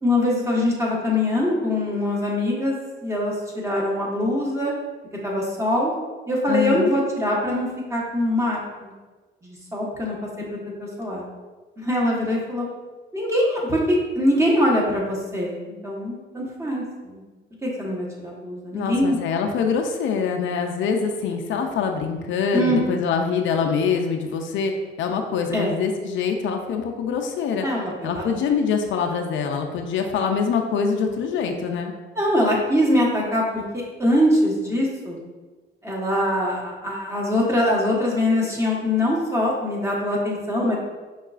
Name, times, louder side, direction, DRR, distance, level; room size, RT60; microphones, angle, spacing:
voice 1, 0.0-4.7 5.2-5.9 6.3-8.9 9.4-10.2 10.8-11.2 11.8-12.6 13.1-17.2 17.6-19.2 22.5-23.1 25.5-25.8 27.6-28.3 32.1-33.6 34.0-35.2 35.8-40.8, left 1 dB, 15° right, -4 dB, 1.0 m, -23 dB
voice 2, 6.5-7.0 18.7-24.7 25.0-27.7 28.0-31.9, left 6 dB, 75° left, 4 dB, 0.4 m, -24 dB
5.4 x 2.3 x 2.4 m, 1.3 s
cardioid pair, 90°, 20 cm